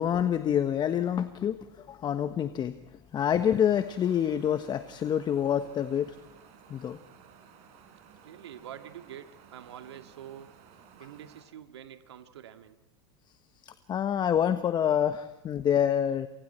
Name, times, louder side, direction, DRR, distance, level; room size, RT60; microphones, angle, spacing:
voice 1, 0.0-1.6 1.9-2.8 3.1-6.1 6.7-7.0 13.6-16.3, left 9 dB, 30° left, 10 dB, 1.2 m, -27 dB
sound 1, 3.2-11.4, right 7 dB, 50° right, 5.2 m, -56 dB
voice 2, 8.0-10.5 11.0-12.8, right 10 dB, 80° right, 7 dB, 2.0 m, -46 dB
28.0 x 24.5 x 4.5 m, 0.96 s
hypercardioid pair, 95°, 14 cm